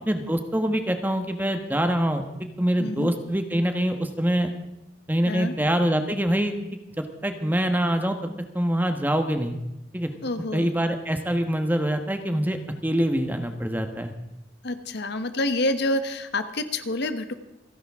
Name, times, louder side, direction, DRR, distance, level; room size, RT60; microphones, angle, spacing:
voice 1, 0.1-4.5 5.1-6.5 7.0-8.2 8.5-9.6 9.9-10.1 10.5-14.1, equal, 10° right, 6 dB, 1.3 m, -25 dB
voice 2, 2.8-3.1 5.3-5.6 10.2-10.7 14.6-17.3, left 2 dB, 60° left, 9 dB, 1.2 m, -27 dB
28.0 x 10.5 x 3.7 m, 0.92 s
head